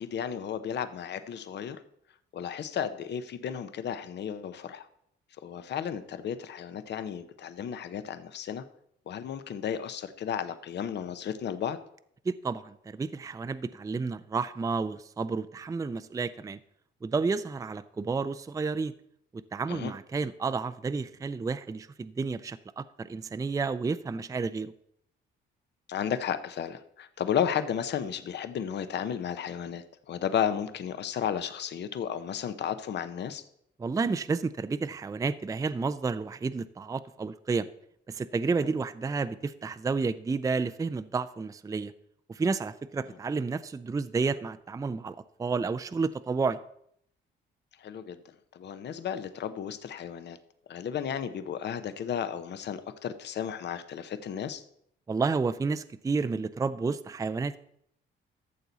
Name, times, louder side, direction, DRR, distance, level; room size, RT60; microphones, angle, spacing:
voice 1, 0.0-1.8 2.3-4.9 5.4-8.6 9.1-11.8 19.7-19.9 25.9-33.4 47.8-48.2 48.5-50.4 50.7-54.6, left 8 dB, 60° left, 11 dB, 0.8 m, -33 dB
voice 2, 12.3-16.6 17.0-18.9 19.3-24.7 33.8-37.7 38.1-41.9 42.3-46.6 55.1-57.6, right 4 dB, 15° right, 12 dB, 0.4 m, -31 dB
13.5 x 6.9 x 4.0 m, 0.71 s
cardioid pair, 90°, 20 cm